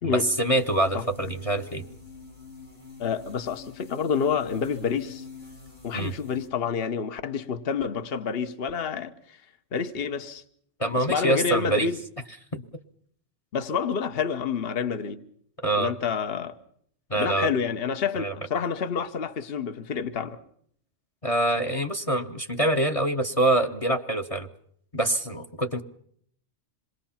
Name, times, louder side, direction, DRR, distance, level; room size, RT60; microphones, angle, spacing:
voice 1, 0.0-1.8 5.9-6.1 10.8-11.9 12.5-12.6 15.6-15.9 17.1-17.5 18.2-18.3 21.2-24.5 24.9-25.8, right 1 dB, 30° left, 1.0 m, -25 dB
sound 1, 0.6-6.5, left 4 dB, 85° left, 6.0 m, -46 dB
voice 2, 3.0-5.2 5.8-9.4 9.7-10.4 11.0-12.0 13.5-15.2 15.7-16.5 17.1-20.4, left 6 dB, 55° left, 1.3 m, -28 dB
27.0 x 21.0 x 5.8 m
omnidirectional pair, 1.2 m